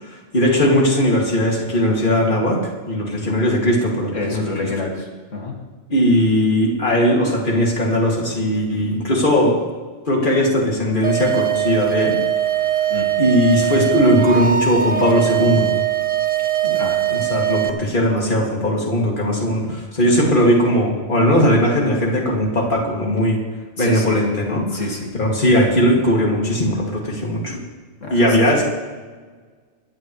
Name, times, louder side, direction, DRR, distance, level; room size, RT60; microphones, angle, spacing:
voice 1, 0.3-2.6 2.9-4.4 5.9-9.6 10.1-12.2 13.2-15.7 16.6-16.8 17.1-23.4 23.8-24.8 25.2-27.6 28.1-28.7, equal, 40° left, -2 dB, 2.6 m, -18 dB
voice 2, 4.1-5.5 12.9-13.1 16.7-17.0 23.8-24.2 24.7-25.1 28.0-28.5, left 3 dB, 90° left, -1 dB, 2.5 m, -27 dB
sound 1, 11.0-17.7, right 11 dB, 85° right, 1.5 m, -21 dB
23.0 x 11.0 x 3.2 m, 1.4 s
omnidirectional pair, 1.3 m